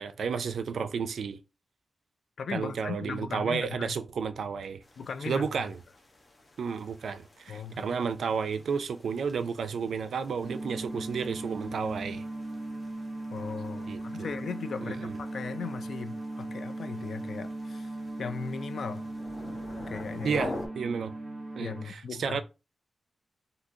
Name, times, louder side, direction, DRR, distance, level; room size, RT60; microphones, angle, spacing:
voice 1, 0.0-1.4 2.5-4.8 5.3-5.8 6.6-12.3 13.9-14.4 14.9-15.2 20.2-21.1 21.6-22.4, right 6 dB, 80° right, 0.4 m, -32 dB
voice 2, 2.4-3.9 5.0-5.7 7.5-7.8 13.3-17.9 18.2-19.0 19.9-20.4 21.6-22.4, left 6 dB, 70° left, 0.3 m, -38 dB
sound 1, 4.8-20.7, left 2 dB, 30° left, 0.9 m, -47 dB
sound 2, 10.4-21.8, right 2 dB, 30° right, 0.7 m, -38 dB
3.7 x 2.6 x 2.7 m
wide cardioid pair, 140°, 0 cm